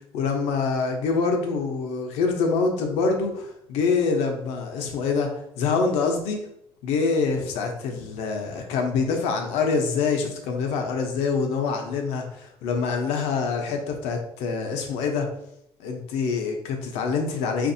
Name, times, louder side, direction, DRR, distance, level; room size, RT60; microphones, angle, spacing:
voice 1, 0.1-6.4 6.8-15.3 15.8-17.7, left 4 dB, 85° left, 3 dB, 0.7 m, -25 dB
4.8 x 2.5 x 2.7 m, 0.76 s
cardioid pair, 120°, 11 cm